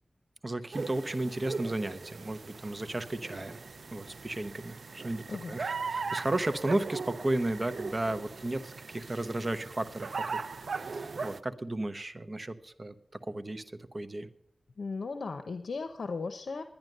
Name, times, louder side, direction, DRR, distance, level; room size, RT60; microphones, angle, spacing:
voice 1, 0.4-3.6 3.9-10.4 10.8-12.9 13.2-13.6 13.9-14.3, right 2 dB, 35° right, 10 dB, 0.9 m, -34 dB
sound 1, 0.7-11.4, right 4 dB, 75° right, 0.5 m, -39 dB
voice 2, 14.8-16.6, left 4 dB, 80° left, 8 dB, 0.7 m, -36 dB
11.0 x 10.5 x 6.5 m, 0.72 s
wide cardioid pair, 70°, 0 cm